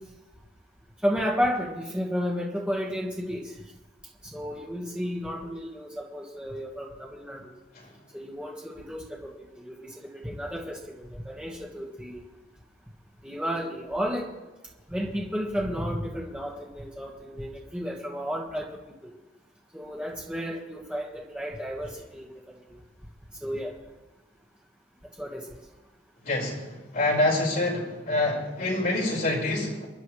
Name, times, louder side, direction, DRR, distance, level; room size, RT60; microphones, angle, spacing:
voice 1, 1.0-3.4 4.3-7.5 8.1-9.3 9.6-12.2 13.2-14.2 14.9-18.7 19.0-19.1 19.7-22.3 23.4-23.7 25.2-25.4, equal, 5° right, -3 dB, 1.6 m, -32 dB
voice 2, 26.2-29.9, left 2 dB, 50° left, -5 dB, 5.1 m, -26 dB
28.5 x 11.0 x 3.3 m, 1.1 s
head